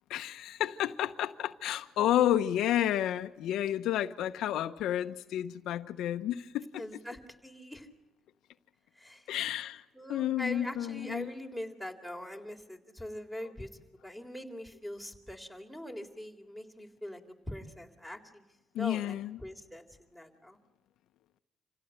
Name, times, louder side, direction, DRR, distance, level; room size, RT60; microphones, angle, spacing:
voice 1, 0.1-6.8 9.3-11.3 18.7-19.4, left 12 dB, 85° left, 0.9 m, -31 dB
voice 2, 6.8-7.9 9.0-9.3 9.9-17.2 17.5-18.4 18.8-20.6, left 1 dB, 5° right, 3.7 m, -42 dB
27.5 x 17.0 x 9.0 m
cardioid pair, 90°, 0 cm